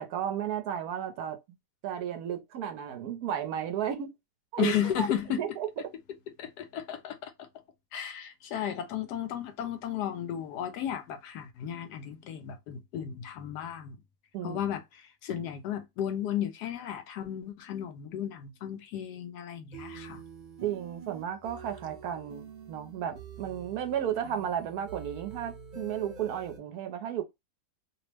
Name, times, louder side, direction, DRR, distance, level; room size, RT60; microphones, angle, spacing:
voice 1, 0.0-1.4 1.8-4.1 4.5-5.7 14.3-14.6 20.6-27.2, right 9 dB, 70° right, 1.0 m, -33 dB
voice 2, 4.6-5.4 6.4-7.5 7.9-14.0 14.4-20.2, left 10 dB, 80° left, 1.1 m, -34 dB
sound 1, 19.7-26.6, right 6 dB, 50° right, 0.6 m, -46 dB
2.9 x 2.0 x 3.1 m
omnidirectional pair, 1.8 m